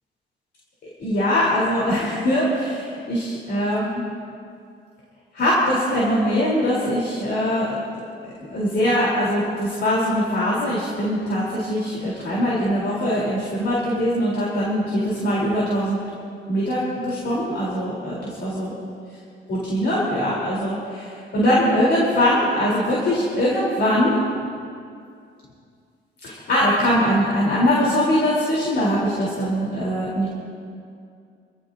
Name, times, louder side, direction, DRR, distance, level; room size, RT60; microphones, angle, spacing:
voice 1, 1.0-4.0 5.3-7.8 8.4-16.0 16.5-18.7 19.5-24.2 26.2-30.3, equal, 60° left, -6 dB, 4.1 m, -22 dB
27.0 x 15.0 x 2.9 m, 2.4 s
cardioid pair, 90°, 20 cm